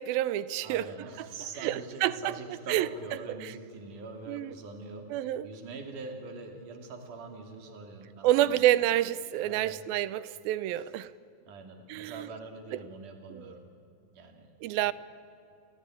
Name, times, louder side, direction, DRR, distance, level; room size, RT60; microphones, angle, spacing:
voice 1, 0.0-0.8 1.6-2.3 2.7-2.9 4.3-4.5 5.1-5.5 8.2-11.1 11.9-12.3 13.3-13.5 14.6-14.9, right 13 dB, 85° right, 2.5 m, -28 dB
voice 2, 0.6-8.7 9.4-9.8 10.6-10.9 11.5-13.7 14.1-14.5 14.8-14.9, right 3 dB, 60° right, 4.1 m, -44 dB
29.5 x 19.0 x 9.7 m
omnidirectional pair, 4.1 m